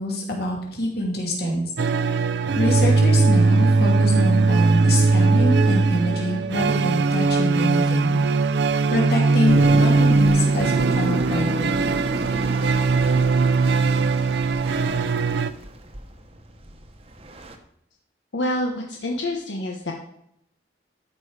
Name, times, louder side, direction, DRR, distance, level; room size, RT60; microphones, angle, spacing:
voice 1, 0.0-1.7 2.5-8.2 8.9-11.7, equal, 55° left, -1 dB, 2.8 m, -25 dB
sound 1, 1.8-15.5, right 3 dB, 65° right, 0.4 m, -19 dB
sound 2, 9.5-17.6, equal, 30° right, 0.9 m, -33 dB
voice 2, 18.3-19.9, left 1 dB, 85° left, 1 dB, 1.1 m, -27 dB
13.0 x 5.4 x 4.8 m, 0.74 s
head